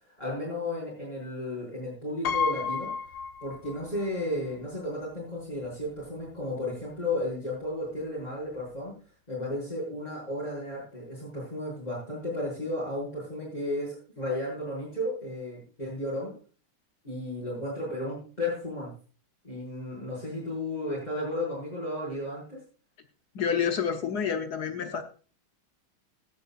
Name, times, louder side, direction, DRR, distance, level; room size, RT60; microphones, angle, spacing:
voice 1, 0.2-2.9 3.4-8.9 9.3-16.3 17.0-18.9 19.4-22.6, left 1 dB, 20° left, -7 dB, 6.2 m, -33 dB
Piano, 2.2-4.1 4.4-4.5 5.6-5.7 6.0-6.3, left 6 dB, 90° left, 1.8 m, -31 dB
voice 2, 23.3-25.0, left 7 dB, 55° left, 7 dB, 1.3 m, -28 dB
16.0 x 10.5 x 2.5 m, 0.38 s
omnidirectional pair, 2.3 m